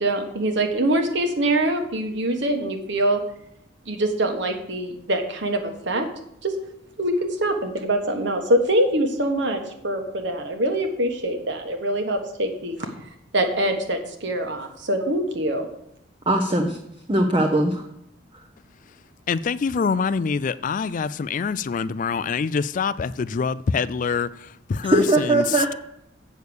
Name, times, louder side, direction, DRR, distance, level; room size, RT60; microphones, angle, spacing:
voice 1, 0.0-3.2 3.9-6.1 6.4-6.5 7.0-12.8 13.3-15.7, right 1 dB, 65° right, 1.4 m, -24 dB
voice 2, 16.3-16.8 17.1-17.9 24.8-25.7, right 1 dB, 25° right, 0.8 m, -20 dB
voice 3, 19.3-25.4, left 5 dB, 40° left, 0.3 m, -25 dB
8.1 x 6.5 x 7.0 m
head